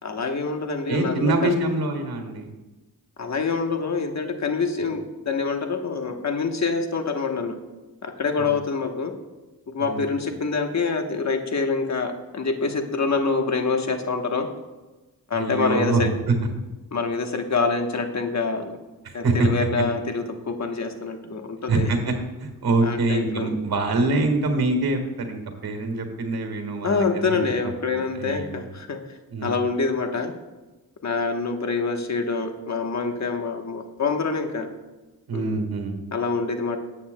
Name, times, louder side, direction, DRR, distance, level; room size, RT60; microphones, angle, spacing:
voice 1, 0.0-1.5 3.2-7.6 8.0-9.1 9.7-14.5 15.3-16.1 16.9-18.8 19.1-21.9 22.8-23.5 26.8-29.0 29.4-30.3 31.0-34.7 35.3-35.6 36.1-36.8, left 4 dB, 50° left, 5 dB, 1.2 m, -26 dB
voice 2, 0.9-2.5 8.4-8.5 9.8-10.0 15.3-16.4 19.0-19.8 21.7-22.1 22.4-27.4 27.9-28.6 29.3-29.5 35.3-36.0, right 2 dB, 75° right, 5 dB, 1.7 m, -25 dB
13.5 x 8.6 x 2.2 m, 1.1 s
cardioid pair, 65°, 36 cm